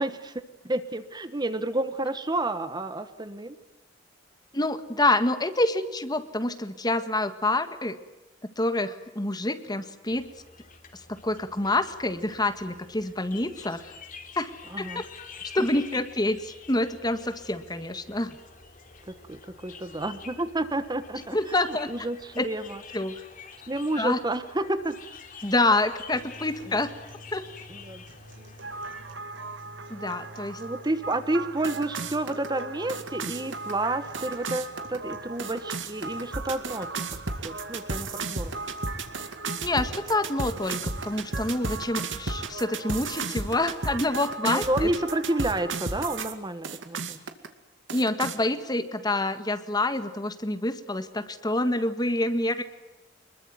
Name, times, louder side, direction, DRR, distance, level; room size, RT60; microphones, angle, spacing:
voice 1, 0.0-3.6 14.7-15.0 19.3-22.8 23.7-25.0 26.7-26.8 27.7-28.0 30.6-37.0 37.4-38.5 44.4-47.2, right 2 dB, 20° right, 11 dB, 1.2 m, -30 dB
voice 2, 4.5-8.0 8.6-10.3 11.1-13.8 14.3-15.0 15.5-18.4 21.3-21.9 22.4-22.5 22.9-23.2 24.0-24.2 25.4-26.9 27.3-27.5 29.9-30.6 39.6-40.8 41.0-44.9 47.9-52.6, left 2 dB, 20° left, 9 dB, 1.7 m, -27 dB
sound 1, 10.0-29.1, left 5 dB, 45° left, 3.0 m, -48 dB
sound 2, 26.1-42.1, right 1 dB, 70° right, 6.0 m, -50 dB
sound 3, 28.6-46.3 46.6-47.5 47.9-48.4, right 3 dB, 85° right, 2.3 m, -34 dB
25.0 x 22.0 x 9.4 m, 1.1 s
head